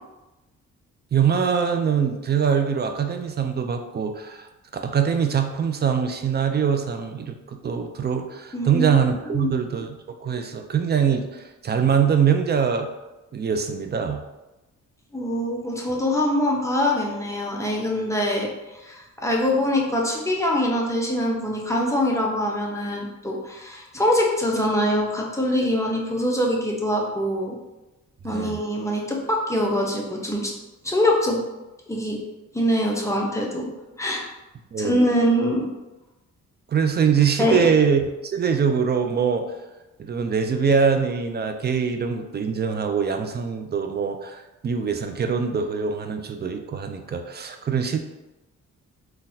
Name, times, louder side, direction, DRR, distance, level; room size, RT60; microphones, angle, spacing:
voice 1, 1.1-4.5 4.7-12.9 13.3-14.2 28.3-28.6 34.7-35.0 36.7-39.5 40.0-48.0, right 7 dB, 35° right, 6 dB, 0.4 m, -23 dB
voice 2, 8.5-9.0 9.3-9.6 15.1-27.6 28.2-30.5 30.8-31.4 31.9-32.2 32.5-33.7 34.0-34.2 34.8-35.7 37.4-37.6, left 1 dB, 10° left, -2 dB, 0.7 m, -23 dB
3.9 x 2.3 x 2.7 m, 1.0 s
cardioid pair, 80°, 31 cm